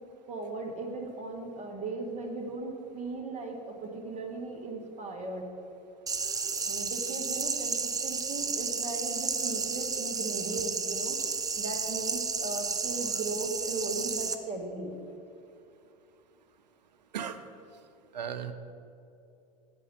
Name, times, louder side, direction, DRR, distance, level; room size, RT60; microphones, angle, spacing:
voice 1, 0.3-5.4 6.6-11.2 11.5-14.9, right 3 dB, 35° right, 2 dB, 1.5 m, -37 dB
sound 1, 6.1-14.3, right 5 dB, 15° right, 0.5 m, -32 dB
voice 2, 18.1-18.5, right 8 dB, 85° right, 9 dB, 0.6 m, -35 dB
8.4 x 5.1 x 7.0 m, 2.7 s
hypercardioid pair, 85°, 21 cm